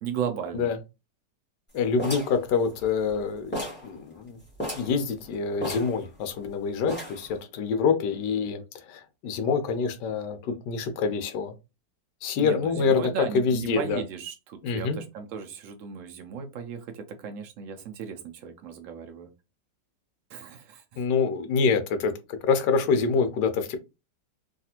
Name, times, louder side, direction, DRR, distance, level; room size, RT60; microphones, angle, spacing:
voice 1, 0.0-0.7 12.4-19.3 20.3-21.0, right 7 dB, 85° right, 0.7 m, -36 dB
voice 2, 1.7-4.4 4.7-11.5 12.2-14.0 14.6-15.0 21.0-22.1 22.4-23.8, left 5 dB, 75° left, 1.2 m, -26 dB
sound 1, 2.0-3.2 3.5-3.9 4.2-4.3 4.6-5.0 5.6-6.5 6.9-7.3, equal, 10° left, 0.8 m, -34 dB
3.3 x 2.3 x 2.8 m
omnidirectional pair, 1.9 m